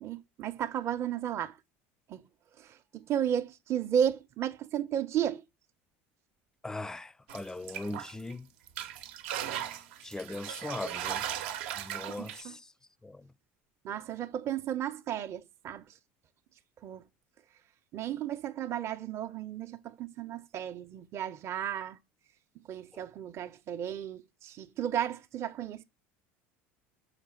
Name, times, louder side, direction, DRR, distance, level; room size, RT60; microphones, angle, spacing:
voice 1, 0.0-1.6 2.1-2.2 2.6-5.4 12.1-12.6 13.8-15.8 16.8-17.0 17.9-22.0 22.7-25.8, right 9 dB, 45° right, 0.7 m, -33 dB
voice 2, 6.6-8.5 10.0-11.2 11.8-12.7 13.0-13.3, left 2 dB, 10° left, 0.4 m, -39 dB
sound 1, 7.3-8.3 8.7-12.4, right 10 dB, 80° right, 0.9 m, -37 dB
6.6 x 4.8 x 6.0 m
supercardioid pair, 90°, 6 cm